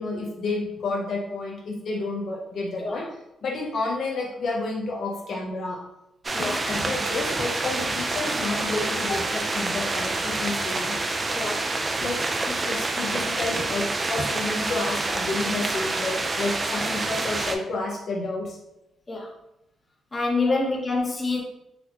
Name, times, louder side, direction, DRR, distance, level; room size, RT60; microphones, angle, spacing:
voice 1, 0.0-3.1 3.4-5.8 6.4-11.0 12.0-12.2 12.6-18.6 20.5-20.6, left 2 dB, 60° left, -2 dB, 0.5 m, -30 dB
sound 1, 6.2-17.6, right 2 dB, 25° right, 0.3 m, -27 dB
voice 2, 6.3-6.7 11.3-11.6 12.5-12.6 19.1-19.3 20.1-21.4, left 3 dB, 25° left, -1 dB, 0.8 m, -26 dB
4.0 x 2.1 x 2.7 m, 0.86 s
cardioid pair, 110°, 0 cm